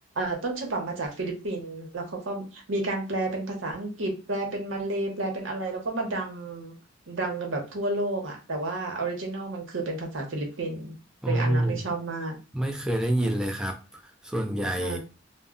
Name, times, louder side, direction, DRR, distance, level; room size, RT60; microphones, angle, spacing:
voice 1, 0.2-6.8 7.1-11.0 11.3-12.4 14.8-15.0, right 2 dB, 85° right, 0.8 m, -31 dB
voice 2, 11.2-11.8 12.5-15.0, right 1 dB, 5° right, 0.3 m, -27 dB
2.1 x 2.0 x 3.6 m
head